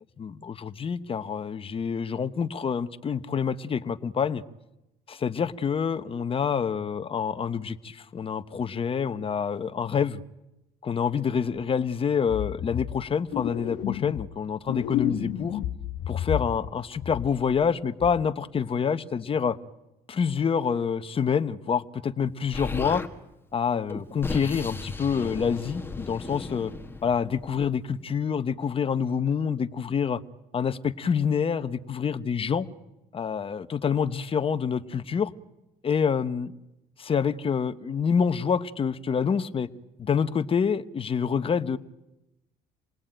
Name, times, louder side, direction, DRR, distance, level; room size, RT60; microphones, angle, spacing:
voice 1, 0.2-4.4 5.1-10.2 10.8-15.6 16.1-19.6 20.1-23.0 23.5-26.7 27.0-30.2 30.5-32.7 33.1-35.3 35.8-36.5 37.0-39.7 40.0-41.8, left 6 dB, 35° left, 11 dB, 1.0 m, -27 dB
sound 1, 12.3-13.0 13.3-14.4 14.7-16.7 17.0-17.6 18.0-18.3, left 12 dB, 85° left, 1.2 m, -31 dB
Explosion, 22.5-23.1 23.9-27.8, left 3 dB, 15° left, 1.9 m, -36 dB
28.0 x 19.5 x 9.0 m, 0.95 s
cardioid pair, 110°, 17 cm